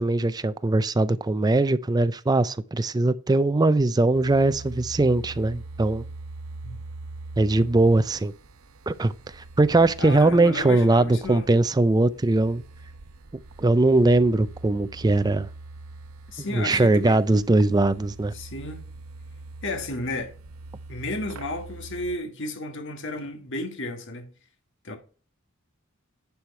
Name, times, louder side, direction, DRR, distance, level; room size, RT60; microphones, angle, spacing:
voice 1, 0.0-6.0 7.4-8.3 8.9-12.6 13.6-15.5 16.5-18.3, right 2 dB, 20° right, 0.4 m, -21 dB
sound 1, 4.1-22.2, right 2 dB, 75° right, 0.8 m, -43 dB
voice 2, 10.0-11.5 16.3-17.2 18.3-18.8 19.6-20.3 20.9-24.3 24.8-25.0, left 2 dB, 60° left, 1.6 m, -33 dB
10.5 x 4.8 x 4.3 m
head